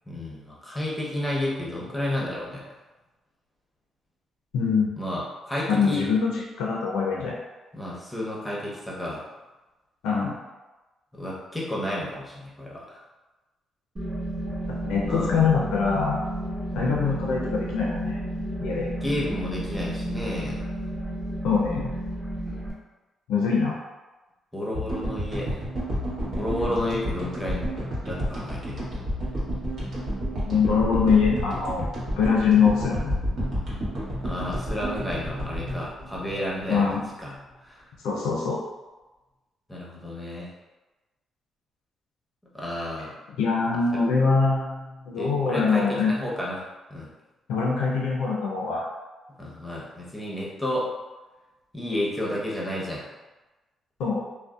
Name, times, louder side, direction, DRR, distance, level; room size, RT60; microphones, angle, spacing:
voice 1, 0.1-2.6 5.0-6.1 7.7-9.2 11.2-13.0 15.1-15.4 19.0-20.7 24.5-25.6 26.4-27.7 28.0-28.8 34.2-37.4 37.6-37.9 39.7-40.5 42.5-43.1 45.2-47.1 49.4-50.9 51.7-53.0, left 1 dB, 5° left, -5 dB, 0.7 m, -31 dB
voice 2, 4.5-4.9 5.7-6.3 6.6-7.4 10.0-10.4 14.8-16.2 16.7-18.2 18.6-18.9 21.4-22.0 23.3-23.8 30.4-31.9 32.2-33.2 36.7-37.0 38.0-38.6 43.4-46.1 47.5-48.9 54.0-54.3, left 5 dB, 85° left, -3 dB, 0.4 m, -23 dB
sound 1, 14.0-22.7, right 1 dB, 25° right, 1.0 m, -32 dB
sound 2, 24.7-37.1, equal, 65° right, 0.9 m, -30 dB
2.6 x 2.0 x 2.3 m, 1.1 s
cardioid pair, 75°, 0 cm